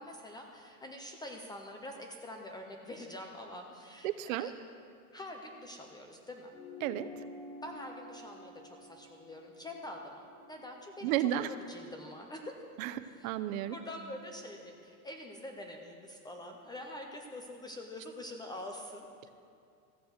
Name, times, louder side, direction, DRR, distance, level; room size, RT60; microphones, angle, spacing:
voice 1, 0.0-4.5 5.1-6.5 7.6-12.5 13.0-13.3 13.7-19.3, left 1 dB, 10° left, 2 dB, 0.4 m, -45 dB
voice 2, 4.0-4.5 6.8-7.1 11.0-11.5 12.8-13.8, right 12 dB, 60° right, 13 dB, 0.7 m, -32 dB
sound 1, 6.5-11.3, left 2 dB, 90° left, 1.9 m, -50 dB
14.5 x 6.9 x 7.9 m, 2.4 s
supercardioid pair, 150°, 45 cm